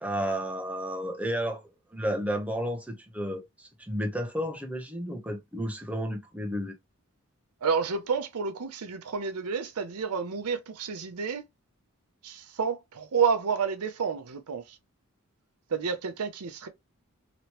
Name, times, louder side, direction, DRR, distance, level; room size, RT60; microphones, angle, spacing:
voice 1, 0.0-6.7, equal, 5° right, 0.7 m, -32 dB
voice 2, 7.6-11.4 12.2-14.8 15.7-16.7, right 6 dB, 85° right, 0.6 m, -30 dB
3.0 x 3.0 x 2.9 m
head